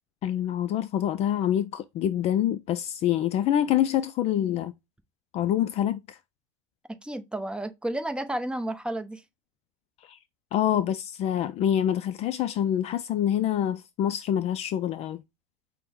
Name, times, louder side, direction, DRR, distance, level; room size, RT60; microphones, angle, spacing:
voice 1, 0.2-4.7 5.3-6.2 10.0-10.2 10.5-15.2, left 10 dB, 35° left, 0.4 m, -26 dB
voice 2, 6.9-9.2, right 1 dB, 5° right, 0.6 m, -32 dB
5.8 x 2.1 x 3.6 m
supercardioid pair, 115°, 18 cm